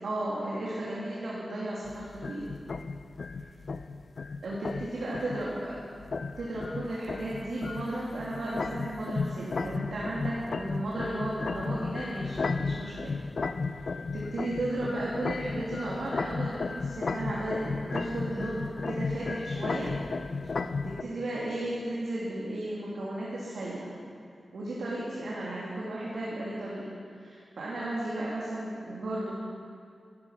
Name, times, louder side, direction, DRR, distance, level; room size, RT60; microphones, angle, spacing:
voice 1, 0.0-2.4 4.4-5.8 6.4-13.2 13.8-19.9 20.4-24.0 24.5-26.8 27.2-29.4, right 1 dB, 90° right, -6 dB, 2.8 m, -34 dB
sound 1, 1.9-21.0, left 4 dB, 65° left, 0.6 m, -34 dB
14.0 x 13.5 x 5.7 m, 2.4 s
cardioid pair, 65°, 0 cm